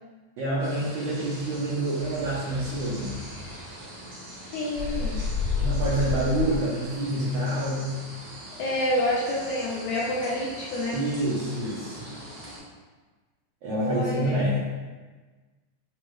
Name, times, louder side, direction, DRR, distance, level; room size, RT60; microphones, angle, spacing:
voice 1, 0.4-3.2 5.6-7.9 10.9-12.1 13.6-14.7, right 1 dB, 80° right, -8 dB, 1.4 m, -27 dB
sound 1, 0.6-12.6, right 1 dB, 60° right, 1.4 m, -43 dB
sound 2, 2.0-4.1 4.7-6.8, left 4 dB, 60° left, 1.2 m, -31 dB
voice 2, 4.5-5.2 8.6-11.0 13.8-14.4, left 1 dB, 75° left, -5 dB, 1.8 m, -28 dB
6.3 x 2.1 x 3.0 m, 1.3 s
omnidirectional pair, 3.8 m